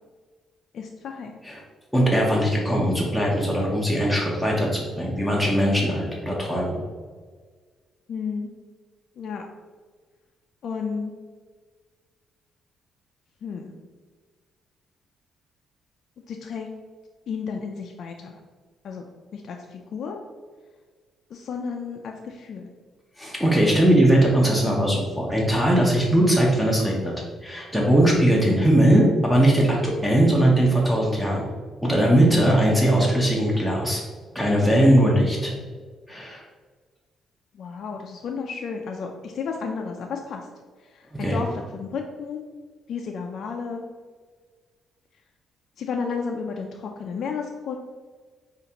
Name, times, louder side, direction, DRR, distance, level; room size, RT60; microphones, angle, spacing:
voice 1, 0.7-1.4 8.1-8.5 9.2-9.5 10.6-11.1 13.4-13.7 16.3-16.7 17.3-18.4 18.8-19.1 19.3-20.2 21.3-22.7 37.5-40.5 40.8-42.4 42.9-43.8 45.8-47.8, left 5 dB, 65° left, 2 dB, 0.3 m, -32 dB
voice 2, 1.9-6.8 23.2-27.1 27.4-31.5 31.8-34.0 34.3-35.5 36.1-36.4 41.2-41.4, right 1 dB, 5° right, -3 dB, 0.8 m, -20 dB
5.0 x 2.5 x 2.8 m, 1.5 s
cardioid pair, 90°, 0 cm